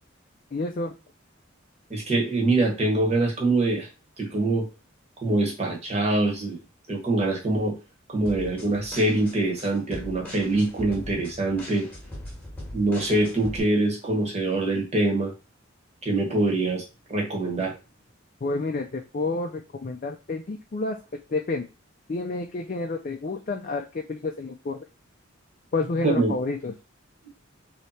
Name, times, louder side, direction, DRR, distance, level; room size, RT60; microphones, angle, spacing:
voice 1, 0.5-0.9 18.4-21.0 21.3-21.7 22.1-24.8 25.7-26.7, left 3 dB, 40° left, 3 dB, 0.4 m, -29 dB
voice 2, 1.9-3.9 4.2-4.7 5.2-6.6 6.9-7.8 8.1-11.9 12.7-15.3 16.0-16.8 17.1-17.7 26.0-26.3, right 2 dB, 30° right, 1 dB, 1.2 m, -24 dB
sound 1, 8.3-13.6, left 1 dB, 5° left, 1.2 m, -40 dB
3.2 x 2.8 x 4.2 m, 0.29 s
head